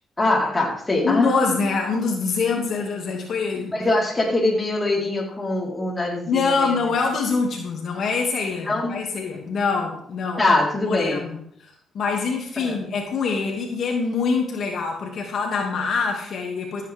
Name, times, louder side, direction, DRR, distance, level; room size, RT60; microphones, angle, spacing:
voice 1, 0.2-1.7 3.7-6.8 8.6-9.0 10.4-11.2 12.6-12.8, left 2 dB, 20° left, -3 dB, 4.3 m, -23 dB
voice 2, 1.0-3.7 6.3-11.4 11.6-16.8, left 4 dB, 60° left, 0 dB, 2.4 m, -25 dB
14.5 x 9.0 x 3.6 m, 0.67 s
cardioid pair, 90°, 0 cm